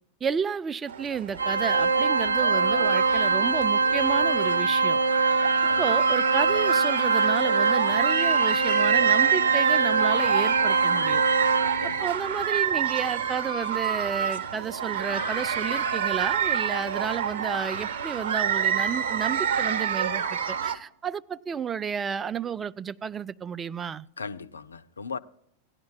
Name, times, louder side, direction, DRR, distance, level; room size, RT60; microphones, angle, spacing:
voice 1, 0.2-5.0 5.8-11.2 12.0-24.1, right 7 dB, 20° right, 0.4 m, -31 dB
sound 1, 0.9-20.8, right 8 dB, 55° right, 0.9 m, -28 dB
Organ, 1.4-12.1, right 4 dB, 75° right, 0.6 m, -23 dB
voice 2, 24.2-25.2, left 5 dB, 75° left, 0.4 m, -37 dB
17.5 x 10.5 x 2.2 m
figure-of-eight pair, 90°, 0 cm